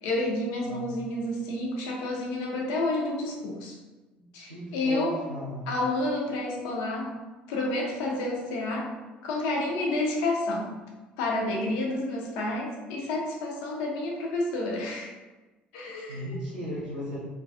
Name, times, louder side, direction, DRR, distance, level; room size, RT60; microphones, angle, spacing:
voice 1, 0.0-3.8 4.3-5.2 5.7-7.1 7.5-8.9 9.2-10.8 11.2-15.1 15.7-16.4, left 2 dB, 65° left, -1 dB, 0.5 m, -30 dB
voice 2, 4.1-5.7 16.1-17.2, left 1 dB, 90° right, -7 dB, 0.6 m, -36 dB
2.4 x 2.2 x 2.4 m, 1.2 s
figure-of-eight pair, 55°, 5 cm